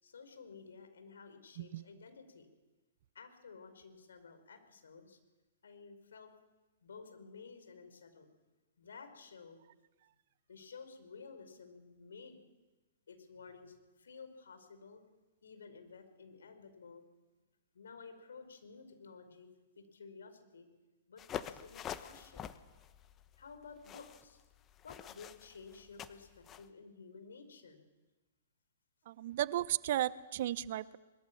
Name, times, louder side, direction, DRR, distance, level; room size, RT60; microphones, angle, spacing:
voice 1, 0.0-2.5 3.1-5.2 5.6-6.3 6.8-8.3 8.8-9.6 10.5-12.4 13.1-15.0 15.4-17.0 17.7-19.5 19.7-20.7 21.1-22.5 23.4-24.4 24.8-27.8, left 5 dB, 75° left, 8 dB, 4.9 m, -53 dB
sound 1, 21.2-26.7, left 9 dB, 25° left, 1.2 m, -47 dB
voice 2, 29.1-31.0, right 13 dB, 55° right, 18 dB, 0.8 m, -34 dB
22.5 x 22.0 x 7.3 m, 1.2 s
figure-of-eight pair, 115°, 0 cm